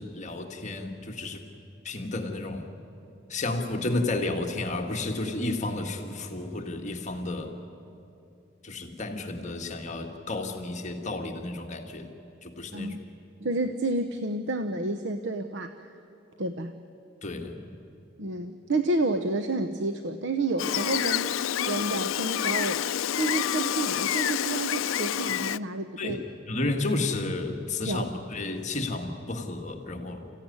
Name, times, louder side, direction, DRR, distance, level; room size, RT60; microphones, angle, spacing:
voice 1, 0.0-1.4 1.8-2.7 3.3-7.6 8.6-12.1 12.4-13.0 17.2-17.7 26.0-26.2 26.5-30.3, left 2 dB, 35° left, 3 dB, 1.7 m, -32 dB
voice 2, 13.4-15.7 16.4-16.7 18.2-21.3 21.7-22.9 23.1-26.2 27.9-28.1, right 2 dB, 65° right, 8 dB, 0.9 m, -30 dB
Gull seagull, 20.6-25.6, left 10 dB, 90° left, 0.5 m, -28 dB
29.0 x 15.5 x 9.7 m, 2.8 s
head